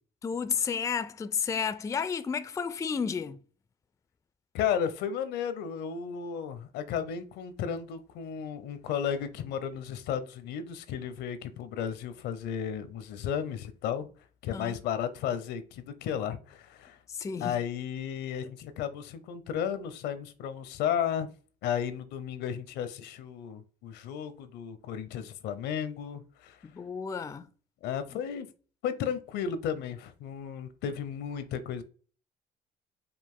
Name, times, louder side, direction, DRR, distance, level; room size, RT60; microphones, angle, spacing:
voice 1, 0.2-3.4 14.5-14.8 17.1-17.6 26.6-27.5, left 6 dB, 20° left, 0.3 m, -32 dB
voice 2, 4.5-14.1 14.4-17.0 17.4-21.3 21.6-26.6 27.8-28.5 28.8-31.8, left 8 dB, 85° left, 0.7 m, -34 dB
5.1 x 2.5 x 3.7 m
cardioid pair, 110°, 17 cm